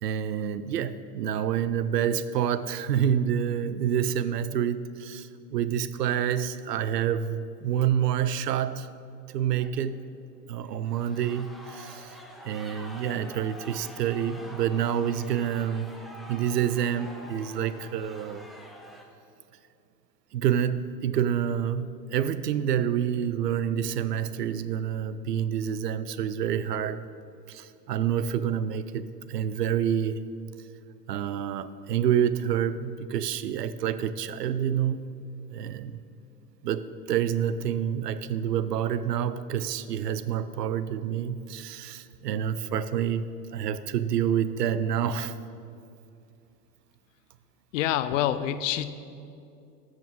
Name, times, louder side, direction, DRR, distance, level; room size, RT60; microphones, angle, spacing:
voice 1, 0.0-8.9 9.3-10.0 10.5-12.2 12.4-15.9 16.3-18.5 20.3-27.0 27.5-30.2 31.1-35.1 35.5-36.0 36.6-45.3, right 9 dB, 75° right, 14 dB, 0.6 m, -28 dB
sound 1, 7.3-7.4 8.0-8.4 9.5-10.1 10.7-19.0, equal, ahead, 0.5 m, -46 dB
voice 2, 47.7-48.9, left 11 dB, 55° left, 13 dB, 0.5 m, -26 dB
13.0 x 6.4 x 3.6 m, 2.6 s
figure-of-eight pair, 85°, 48 cm